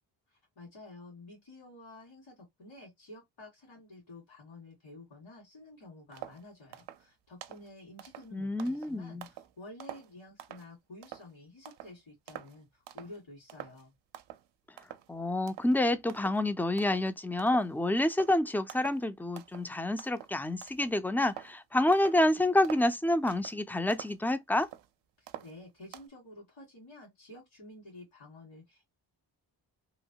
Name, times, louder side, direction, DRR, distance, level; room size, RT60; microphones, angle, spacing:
voice 1, 0.3-13.9 25.2-28.9, left 2 dB, 70° left, 1.8 m, -51 dB
sound 1, 6.1-6.4 6.7-7.1 7.4-7.7 8.0-9.5 9.8-10.7 11.0-11.3 11.7-12.0 12.3-12.6 12.9-13.2 13.5-13.8 14.1-14.5 14.8-15.2 15.5-15.7 16.1-16.4 16.8-17.1 17.4-17.8 18.1-18.4 18.7-19.1 19.4-19.7 20.0-21.6 21.9-22.2 22.6-22.9 23.3-23.6 23.9-24.9 25.3-26.1, right 12 dB, 65° right, 0.6 m, -47 dB
voice 2, 8.3-9.3 15.1-24.7, left 1 dB, 5° left, 0.3 m, -28 dB
3.0 x 2.1 x 2.7 m
cardioid pair, 50°, 47 cm